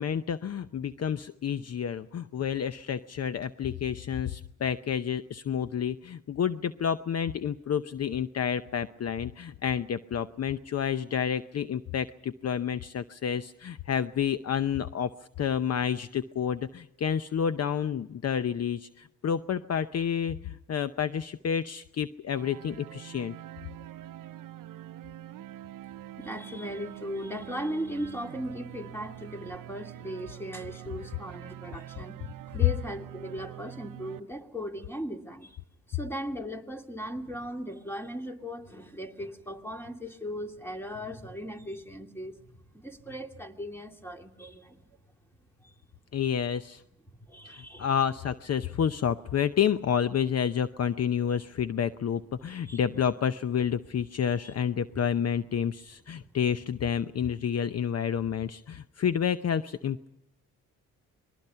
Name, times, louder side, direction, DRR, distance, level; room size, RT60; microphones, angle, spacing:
voice 1, 0.0-15.1 15.4-23.4 46.1-46.8 47.4-60.1, left 8 dB, 50° left, 13 dB, 0.8 m, -29 dB
sound 1, 22.3-34.2, right 13 dB, 70° right, 0.8 m, -45 dB
voice 2, 26.2-32.2 32.5-35.6 35.9-42.4 42.7-44.8 45.6-45.7 47.1-47.9 52.7-52.8 54.4-54.5 54.9-55.0 55.3-55.4 56.2-56.3, equal, 5° left, 4 dB, 2.5 m, -38 dB
26.5 x 21.0 x 5.7 m, 0.84 s
cardioid pair, 70°, 33 cm